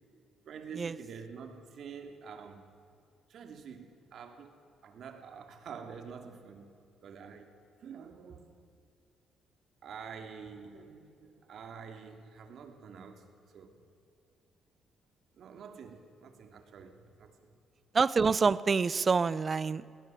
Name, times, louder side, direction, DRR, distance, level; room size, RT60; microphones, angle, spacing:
voice 1, 0.4-2.6 3.3-4.6 4.8-6.7 7.0-7.5 7.8-8.6 9.8-13.2 13.5-13.8 15.4-17.5, right 6 dB, 65° right, 6 dB, 2.8 m, -47 dB
voice 2, 17.9-20.0, right 5 dB, 35° right, 19 dB, 0.7 m, -27 dB
22.0 x 18.0 x 7.7 m, 2.4 s
cardioid pair, 90°, 0 cm